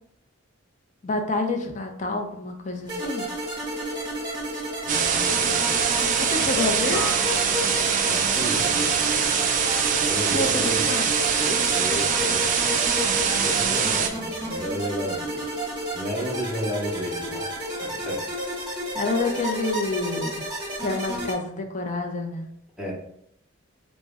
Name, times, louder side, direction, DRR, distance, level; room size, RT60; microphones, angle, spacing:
voice 1, 1.0-3.3 6.2-7.0 10.3-11.1 18.9-20.5 20.8-22.5, left 2 dB, 35° left, 4 dB, 0.5 m, -28 dB
sound 1, 2.9-21.3, right 1 dB, 20° right, 1.0 m, -31 dB
voice 2, 4.8-5.8 8.0-8.9 10.1-10.8 11.4-12.5 13.2-15.4 15.9-17.5 17.8-18.3 22.8-22.9, equal, 5° right, -4 dB, 0.8 m, -33 dB
sound 2, 4.9-14.1, right 7 dB, 35° right, 0.3 m, -23 dB
Acoustic guitar, 6.9-12.1, equal, 60° left, 1.0 m, -40 dB
4.6 x 2.0 x 3.3 m, 0.74 s
head